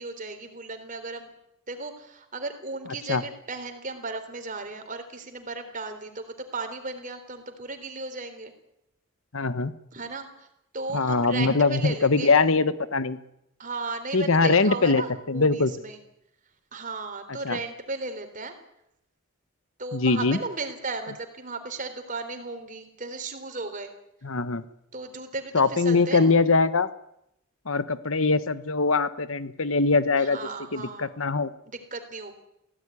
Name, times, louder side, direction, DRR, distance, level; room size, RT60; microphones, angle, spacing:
voice 1, 0.0-1.3 1.7-8.5 9.9-10.5 10.7-12.3 13.6-16.0 16.7-18.5 19.8-23.9 24.9-26.3 30.2-31.1 31.7-32.4, right 3 dB, 35° right, 7 dB, 3.6 m, -35 dB
voice 2, 9.3-9.7 10.9-13.2 14.1-15.0 15.3-15.7 17.4-17.6 19.9-20.4 24.2-24.6 25.5-26.9 27.6-30.4 30.7-31.5, left 3 dB, 70° left, 14 dB, 1.1 m, -22 dB
24.0 x 16.5 x 9.8 m, 0.82 s
head